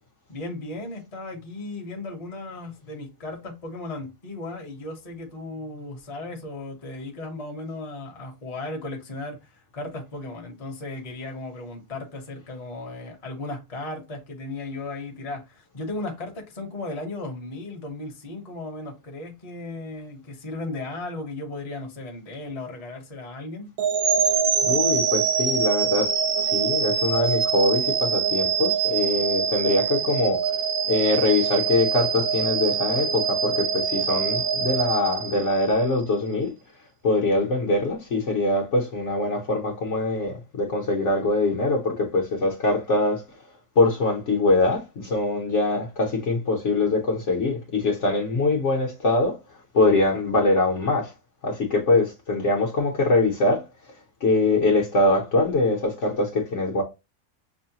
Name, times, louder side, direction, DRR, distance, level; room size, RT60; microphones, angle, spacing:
voice 1, 0.3-23.7, left 2 dB, 30° left, 0.9 m, -36 dB
sound 1, 23.8-35.9, right 7 dB, 65° right, 1.0 m, -24 dB
voice 2, 24.6-30.5 30.9-36.5 37.0-43.2 43.8-49.4 49.7-51.1 51.4-53.7 54.2-56.8, left 2 dB, 55° left, 1.1 m, -23 dB
6.1 x 2.1 x 2.8 m
omnidirectional pair, 1.7 m